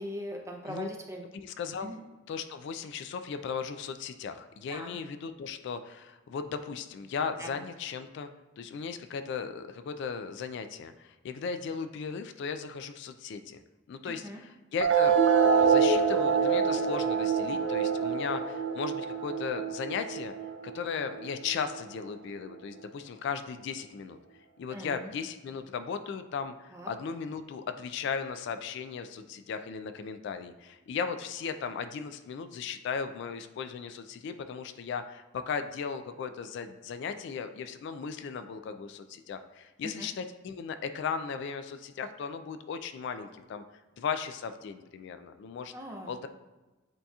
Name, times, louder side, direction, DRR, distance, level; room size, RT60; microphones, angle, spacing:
voice 1, 0.0-1.3 1.8-2.0 4.7-5.0 7.4-7.6 14.0-14.4 24.7-25.1 26.7-26.9 39.8-40.1 43.2-43.3 45.7-46.2, equal, 15° right, 1 dB, 0.6 m, -41 dB
voice 2, 1.3-2.0 2.3-8.3 8.6-13.6 13.9-15.2 15.5-20.3 20.6-24.2 24.6-43.6 44.0-45.7 46.1-46.3, left 6 dB, 65° left, 9 dB, 0.3 m, -36 dB
sound 1, 14.8-21.8, right 6 dB, 65° right, 0.5 m, -26 dB
7.9 x 2.8 x 2.3 m, 1.2 s
head